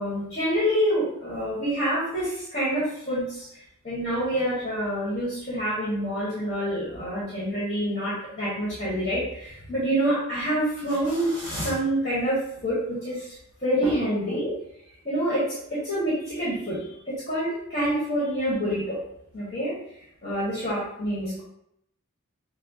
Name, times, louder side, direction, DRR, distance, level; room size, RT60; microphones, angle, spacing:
voice 1, 0.0-3.5 3.8-13.4 13.6-14.5 15.0-16.8 17.1-19.0 19.3-19.7 20.2-21.4, equal, 30° left, -9 dB, 1.4 m, -27 dB
5.9 x 2.0 x 3.0 m, 0.75 s
head